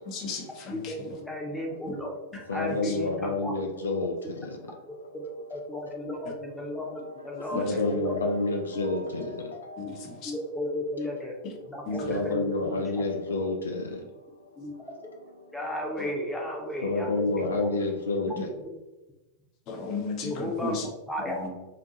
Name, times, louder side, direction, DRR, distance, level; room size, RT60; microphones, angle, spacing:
voice 1, 0.1-0.9 9.8-10.3 11.9-12.1 18.4-18.5 19.7-20.9, left 3 dB, 40° left, 0.7 m, -34 dB
voice 2, 0.8-3.5 5.1-8.3 10.2-11.4 11.6-13.0 14.6-14.7 15.0-15.1 15.5-17.9 18.6-18.7 20.2-20.8 21.1-21.5, left 1 dB, 5° left, 0.8 m, -34 dB
voice 3, 2.5-5.1 6.9-7.1 7.4-10.3 12.1-14.9 15.4-15.5 16.8-18.5, left 2 dB, 70° left, 0.4 m, -30 dB
4.1 x 2.6 x 2.6 m
figure-of-eight pair, 90°, 0 cm